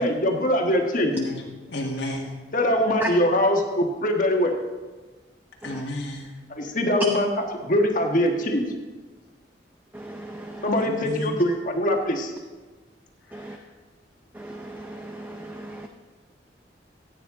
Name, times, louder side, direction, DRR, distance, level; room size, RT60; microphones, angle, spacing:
voice 1, 0.0-1.1 2.5-4.5 6.5-8.7 10.6-12.3, left 1 dB, 45° left, 2 dB, 1.4 m, -22 dB
voice 2, 1.7-2.3 5.6-6.3 10.8-11.3 13.5-13.6, left 1 dB, 80° left, 0 dB, 1.6 m, -31 dB
voice 3, 9.9-10.6 13.3-13.6 14.4-15.9, right 1 dB, 10° right, 4 dB, 0.5 m, -39 dB
14.5 x 9.2 x 3.7 m, 1.3 s
head